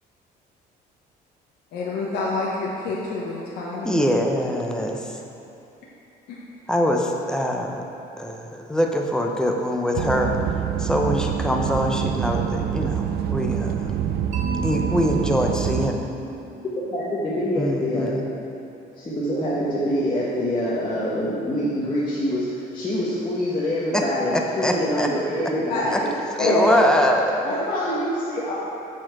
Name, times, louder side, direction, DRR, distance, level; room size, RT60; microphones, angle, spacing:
voice 1, 1.7-4.0 6.3-6.4 25.7-25.8 26.4-26.8 27.5-27.6, left 2 dB, 75° left, -6 dB, 1.1 m, -26 dB
voice 2, 3.8-5.0 6.7-7.8 8.2-10.3 10.8-13.9 14.6-16.1 17.6-18.2 23.9-24.0 24.6-25.1 26.4-27.3, equal, 5° left, 1 dB, 0.8 m, -23 dB
sound 1, 10.0-15.9, right 9 dB, 65° right, 0.4 m, -26 dB
Mallet percussion, 14.3-18.3, right 2 dB, 45° right, 1.4 m, -37 dB
voice 3, 16.9-18.2 18.9-26.1 26.4-26.7 27.3-28.5, equal, 30° left, -9 dB, 1.3 m, -25 dB
7.5 x 4.4 x 5.9 m, 2.9 s
cardioid pair, 110°, 17 cm